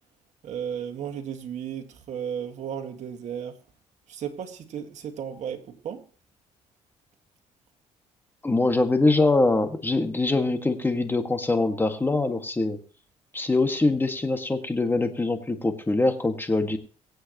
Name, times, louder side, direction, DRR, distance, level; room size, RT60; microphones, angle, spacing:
voice 1, 0.4-3.6 4.1-6.1, right 8 dB, 65° right, 2.0 m, -34 dB
voice 2, 8.4-12.8 13.3-16.8, left 2 dB, 15° left, 1.9 m, -23 dB
24.0 x 8.1 x 3.1 m
cardioid pair, 95°, 13 cm